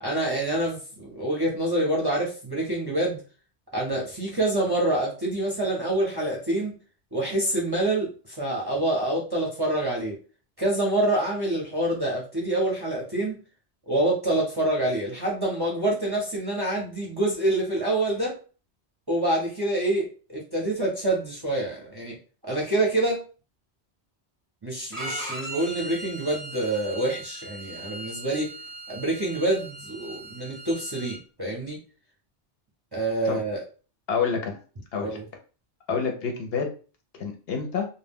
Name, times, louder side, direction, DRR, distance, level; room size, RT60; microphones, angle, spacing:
voice 1, 0.0-3.2 3.7-6.8 7.1-10.2 10.6-13.4 13.9-18.3 19.1-22.2 22.5-23.2 24.6-28.5 28.9-31.8 32.9-33.6 35.0-35.2, right 1 dB, 30° right, -3 dB, 0.5 m, -26 dB
Bowed string instrument, 24.9-31.2, right 2 dB, 25° left, 0.6 m, -39 dB
voice 2, 34.1-34.6 34.9-35.2 35.9-36.7 37.1-37.9, left 5 dB, 65° left, 3 dB, 0.8 m, -28 dB
2.2 x 2.1 x 3.4 m, 0.37 s
omnidirectional pair, 1.2 m